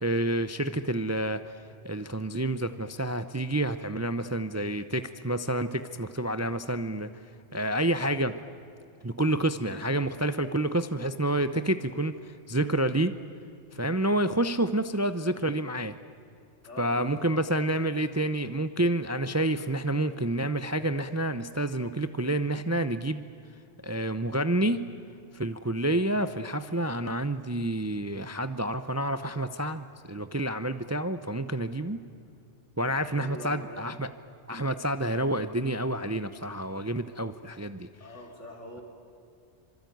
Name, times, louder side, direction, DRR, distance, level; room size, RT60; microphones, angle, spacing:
voice 1, 0.0-7.1 7.5-8.4 9.0-13.2 13.7-15.9 16.8-23.3 23.8-24.9 25.3-32.0 32.8-34.1 34.5-37.9, right 1 dB, 15° right, 11 dB, 0.6 m, -29 dB
voice 2, 16.6-17.4 32.8-33.9 38.0-38.8, left 1 dB, 70° left, 1 dB, 4.5 m, -43 dB
26.0 x 24.5 x 9.4 m, 2.5 s
omnidirectional pair, 1.3 m